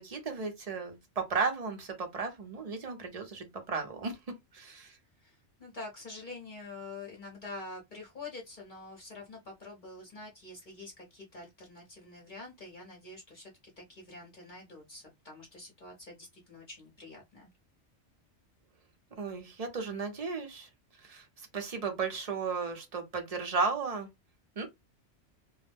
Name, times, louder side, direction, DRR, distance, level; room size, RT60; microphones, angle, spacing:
voice 1, 0.0-4.2 4.5-5.0 19.2-20.7 21.0-24.1 24.6-24.7, right 4 dB, 40° right, 0.6 m, -34 dB
voice 2, 5.2-13.5 13.8-17.5, left 3 dB, 45° left, 0.8 m, -46 dB
2.3 x 2.0 x 3.2 m
omnidirectional pair, 1.2 m